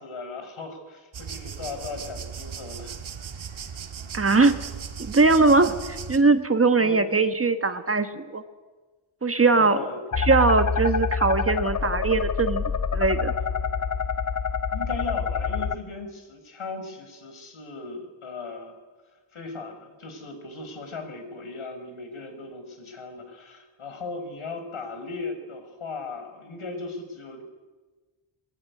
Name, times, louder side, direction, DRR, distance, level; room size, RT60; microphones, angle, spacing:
voice 1, 0.0-3.0 5.8-5.9 6.8-7.2 9.5-10.0 14.7-18.8 19.3-27.4, left 3 dB, 75° left, 6 dB, 5.1 m, -37 dB
sound 1, 1.1-6.2, right 7 dB, 70° right, 2.0 m, -37 dB
voice 2, 4.1-4.6 5.0-8.4 9.2-9.8 10.2-13.3, right 3 dB, 30° right, 9 dB, 1.3 m, -21 dB
sound 2, 10.1-15.7, left 5 dB, 35° left, 0.7 m, -26 dB
23.0 x 22.0 x 9.6 m, 1.3 s
wide cardioid pair, 175°, 49 cm